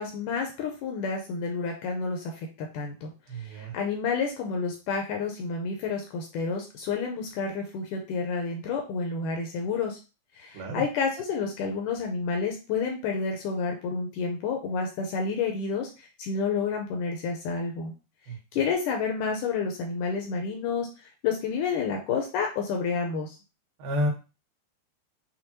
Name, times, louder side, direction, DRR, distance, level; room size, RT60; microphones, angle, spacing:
voice 1, 0.0-10.0 10.4-17.9 18.5-23.4, left 5 dB, 80° left, 2 dB, 1.9 m, -30 dB
voice 2, 3.3-3.7 10.5-10.8 18.3-18.4 23.8-24.1, left 1 dB, 80° right, 0 dB, 2.9 m, -29 dB
6.5 x 2.3 x 2.9 m, 0.31 s
omnidirectional pair, 4.1 m